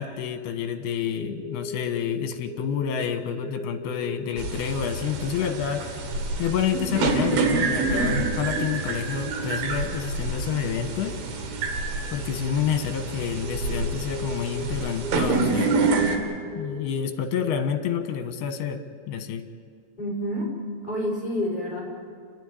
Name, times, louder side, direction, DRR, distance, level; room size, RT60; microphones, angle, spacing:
voice 1, 0.0-6.0 6.4-11.2 12.1-15.8 16.5-19.5, left 8 dB, 80° left, 8 dB, 3.2 m, -29 dB
sound 1, 1.2-2.1 2.5-3.0 3.4-4.4 6.1-6.2 8.5-8.6 11.5-11.6 11.8-12.5 12.7-12.9 13.4-14.7 15.0-17.0 17.4-17.5, left 3 dB, 15° right, 7.8 m, -37 dB
sound 2, 4.4-16.2, right 3 dB, 80° right, 4.2 m, -27 dB
voice 2, 20.0-20.5 20.8-21.8, equal, 10° left, -4 dB, 6.0 m, -28 dB
28.0 x 12.0 x 9.8 m, 2.1 s
omnidirectional pair, 4.6 m